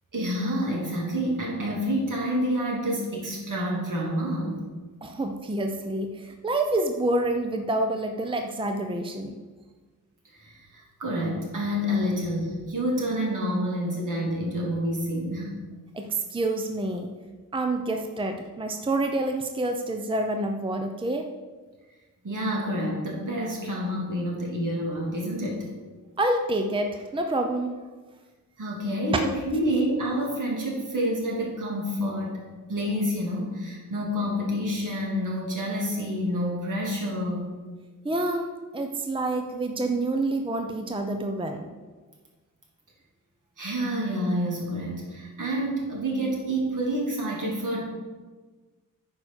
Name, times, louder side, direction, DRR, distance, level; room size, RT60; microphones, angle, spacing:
voice 1, 0.1-4.6 10.4-15.5 22.2-25.7 28.6-32.4 32.7-37.5 43.6-47.8, equal, 65° right, -3 dB, 2.9 m, -28 dB
voice 2, 5.0-9.4 15.9-17.1 17.5-21.3 26.2-27.8 38.0-41.7, right 2 dB, 15° right, 5 dB, 0.6 m, -28 dB
9.5 x 4.9 x 6.4 m, 1.3 s
wide cardioid pair, 110°, 33 cm